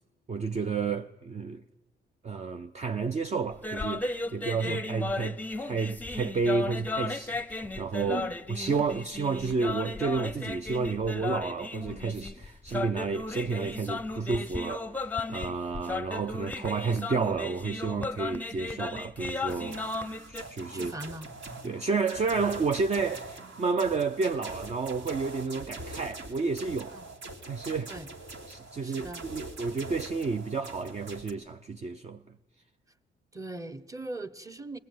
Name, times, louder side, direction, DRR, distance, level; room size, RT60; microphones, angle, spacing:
voice 1, 0.3-1.6 2.2-8.2 8.5-19.8 20.3-20.9 21.6-27.0 27.5-27.9 28.5-32.2, right 4 dB, 35° right, 0.7 m, -31 dB
sound 1, 3.5-20.4, left 2 dB, 10° left, 0.8 m, -35 dB
voice 2, 8.1-8.4 20.7-21.3 26.9-27.0 27.9-28.1 28.8-29.3 33.3-34.8, right 2 dB, 15° right, 1.2 m, -40 dB
sound 2, 19.5-31.3, right 2 dB, 70° right, 2.7 m, -43 dB
20.5 x 20.0 x 9.4 m
cardioid pair, 90°, 20 cm